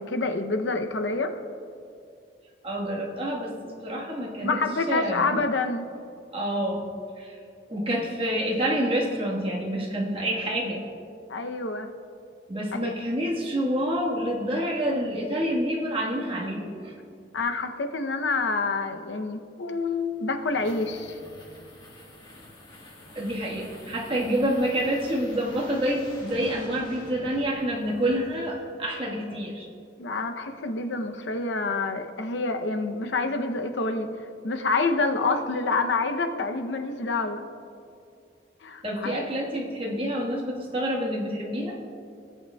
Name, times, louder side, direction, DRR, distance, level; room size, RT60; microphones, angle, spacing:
voice 1, 0.0-1.4 4.4-5.8 11.3-11.9 12.8-12.9 17.3-21.2 30.0-34.1 34.4-37.5 38.6-39.3, left 3 dB, 85° left, 6 dB, 0.7 m, -27 dB
voice 2, 2.6-3.5 3.8-4.6 4.9-5.3 6.3-6.9 7.2-7.4 7.7-10.8 12.5-16.9 23.1-29.7 38.8-41.8, equal, 30° right, -3 dB, 1.5 m, -28 dB
sound 1, 19.9-28.8, left 1 dB, 25° left, 1.5 m, -46 dB
17.0 x 8.5 x 2.3 m, 2.5 s
head